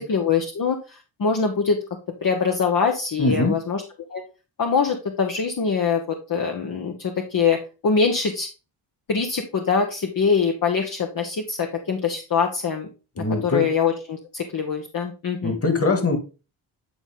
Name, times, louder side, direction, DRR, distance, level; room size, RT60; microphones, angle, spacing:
voice 1, 0.0-1.8 2.2-3.8 4.1-4.2 4.6-8.5 9.1-12.9 13.2-15.6, left 5 dB, 50° left, 3 dB, 1.2 m, -23 dB
voice 2, 3.2-3.6 13.2-13.6 15.4-16.2, left 3 dB, 30° left, 7 dB, 2.2 m, -22 dB
10.0 x 4.1 x 3.7 m, 0.32 s
cardioid pair, 70°, 45 cm